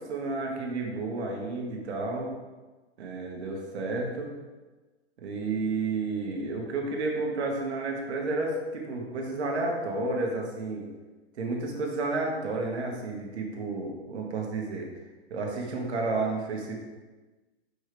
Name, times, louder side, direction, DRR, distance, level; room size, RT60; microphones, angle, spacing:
voice 1, 0.0-2.3 3.0-4.3 5.2-10.9 11.3-14.9 15.3-16.8, right 3 dB, 75° right, 0 dB, 1.6 m, -31 dB
6.8 x 5.3 x 3.2 m, 1.2 s
hypercardioid pair, 140°, 34 cm